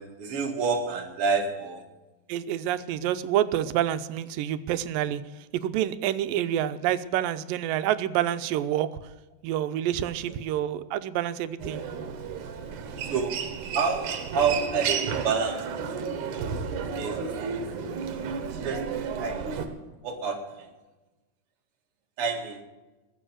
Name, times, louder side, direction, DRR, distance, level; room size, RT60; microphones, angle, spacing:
voice 1, 0.0-1.9 10.0-10.3 13.0-15.8 17.0-17.4 18.6-19.6 20.0-20.7 22.2-22.6, right 5 dB, 45° right, 2 dB, 2.5 m, -29 dB
voice 2, 2.3-5.2 5.5-9.0 9.4-11.8, right 11 dB, 90° right, 12 dB, 2.5 m, -27 dB
Human voice, 11.6-19.7, right 6 dB, 70° right, 2.7 m, -32 dB
21.0 x 7.5 x 7.9 m, 1.1 s
omnidirectional pair, 3.9 m